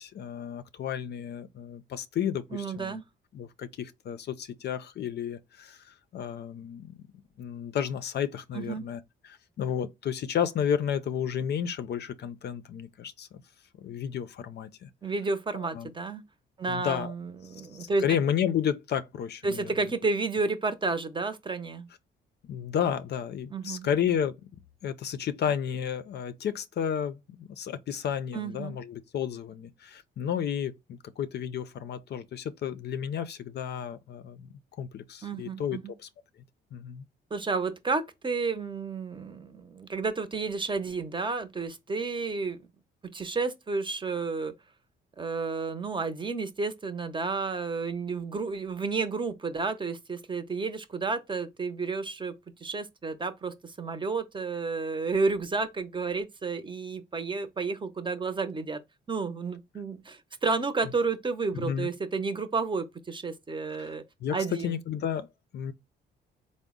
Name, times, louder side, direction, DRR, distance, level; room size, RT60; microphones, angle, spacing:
voice 1, 0.0-3.0 3.3-7.0 7.4-13.4 13.8-14.9 15.5-15.9 16.7-17.1 17.8-19.9 22.5-24.3 24.8-34.5 34.8-36.1 36.7-37.0 61.5-61.9 63.8-63.9 64.2-64.4 64.6-65.3 65.5-65.7, left 8 dB, 55° left, 0.5 m, -32 dB
voice 2, 2.5-3.0 8.5-8.9 15.0-16.2 16.6-18.0 19.4-21.9 23.5-23.9 28.3-28.8 35.2-35.9 37.3-42.6 43.1-44.5 45.2-52.3 52.6-58.8 59.1-64.0 64.3-64.7, right 4 dB, 25° right, 0.7 m, -31 dB
3.8 x 2.1 x 3.6 m
cardioid pair, 90°, 20 cm